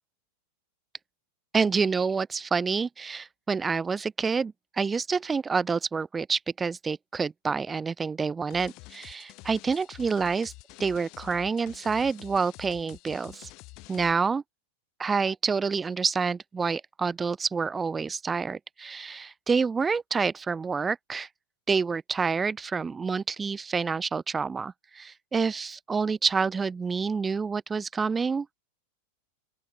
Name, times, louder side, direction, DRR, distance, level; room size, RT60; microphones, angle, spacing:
voice 1, 1.5-10.5 10.8-13.5 13.9-14.4 15.0-21.3 21.7-28.5, right 5 dB, 15° right, 0.4 m, -28 dB
sound 1, 8.5-14.1, left 24 dB, 40° left, 0.9 m, -48 dB
open air
figure-of-eight pair, 90°, 0 cm